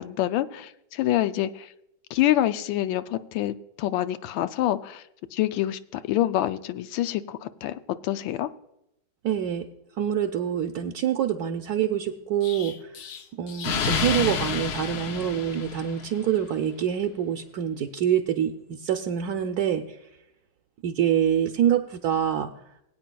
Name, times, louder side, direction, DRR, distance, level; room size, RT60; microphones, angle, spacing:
voice 1, 0.0-1.7 2.1-5.0 5.3-8.5, left 13 dB, 90° left, 12 dB, 1.3 m, -26 dB
voice 2, 9.2-9.7 10.0-12.9 13.3-20.0 20.8-22.5, right 9 dB, 70° right, 5 dB, 1.0 m, -26 dB
Explosion, 12.4-16.3, left 6 dB, 65° left, 1.2 m, -30 dB
21.0 x 8.7 x 2.3 m, 0.85 s
omnidirectional pair, 2.0 m